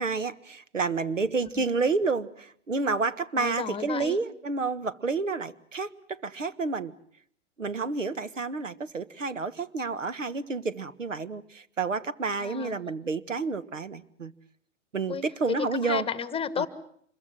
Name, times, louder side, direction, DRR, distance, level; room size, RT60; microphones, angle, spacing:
voice 1, 0.0-6.9 7.6-14.3 14.9-16.1 16.6-16.7, right 4 dB, 90° right, 14 dB, 1.4 m, -30 dB
voice 2, 3.4-4.2 12.4-12.8 15.1-16.7, left 7 dB, 15° left, 15 dB, 1.4 m, -33 dB
26.5 x 22.0 x 7.6 m, 0.65 s
figure-of-eight pair, 110°, 37 cm